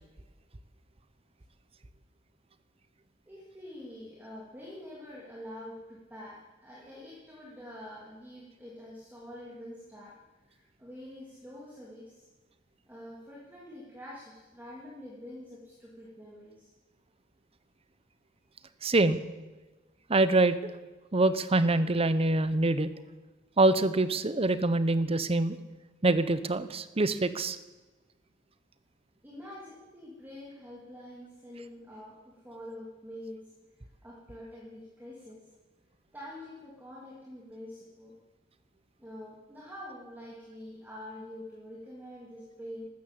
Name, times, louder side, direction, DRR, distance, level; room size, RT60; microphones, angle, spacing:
voice 1, 3.3-10.2 10.4-12.3 12.8-16.7 29.2-33.4 34.0-35.4 36.1-38.1 39.0-42.9, left 1 dB, 10° right, -6 dB, 3.0 m, -46 dB
voice 2, 18.8-19.2 20.1-20.6 21.1-22.9 23.6-25.6 26.0-27.6, right 2 dB, 30° right, 13 dB, 0.8 m, -25 dB
13.0 x 13.0 x 7.8 m, 1.2 s
head